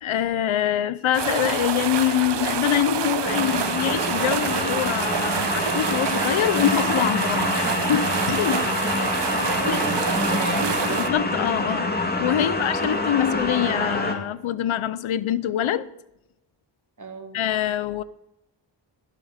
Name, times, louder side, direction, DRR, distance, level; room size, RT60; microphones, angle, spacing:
voice 1, 0.0-8.7 9.7-9.8 11.1-11.9 12.2-15.9 17.3-18.0, left 11 dB, 90° left, 0.7 m, -24 dB
sound 1, 1.1-11.1, right 8 dB, 60° right, 1.0 m, -27 dB
sound 2, 3.2-14.1, left 2 dB, 20° left, 2.0 m, -26 dB
voice 2, 9.4-11.0 17.0-17.4, right 3 dB, 40° right, 2.4 m, -34 dB
16.0 x 7.7 x 5.0 m
cardioid pair, 60°, 47 cm